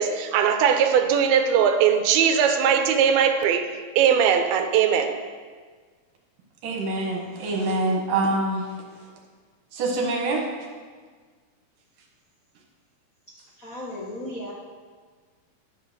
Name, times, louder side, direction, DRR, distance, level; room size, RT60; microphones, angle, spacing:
voice 1, 0.0-3.7 4.0-5.2, right 7 dB, 85° right, 2.6 m, -20 dB
voice 2, 6.6-8.6 9.7-10.4, right 2 dB, 65° right, 2.9 m, -25 dB
voice 3, 13.6-14.5, left 1 dB, 75° left, 0.7 m, -35 dB
10.5 x 5.7 x 6.7 m
omnidirectional pair, 4.3 m